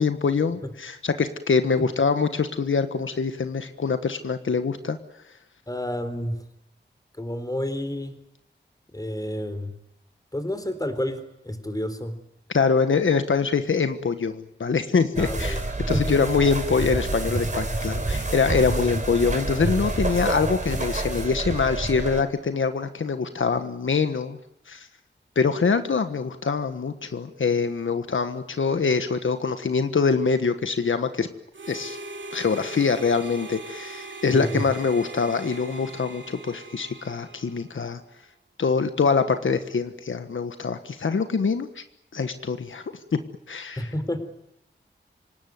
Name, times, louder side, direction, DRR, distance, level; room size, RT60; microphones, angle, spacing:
voice 1, 0.0-5.0 12.5-15.6 15.9-24.4 24.7-24.9 25.3-31.3 31.7-32.0 32.3-38.0 38.6-41.8 42.1-42.8 43.5-43.9, left 5 dB, 85° left, 9 dB, 1.4 m, -24 dB
voice 2, 5.7-6.4 7.2-8.2 8.9-9.8 10.3-12.2 15.2-16.2 18.8-18.9 34.3-34.6 43.8-44.2, left 1 dB, 20° left, 10 dB, 3.7 m, -30 dB
sound 1, 15.2-22.2, right 2 dB, 40° right, 3.8 m, -28 dB
Harmonica, 31.5-37.9, right 3 dB, 70° right, 3.0 m, -40 dB
26.5 x 18.5 x 9.5 m, 0.81 s
wide cardioid pair, 75°, 20 cm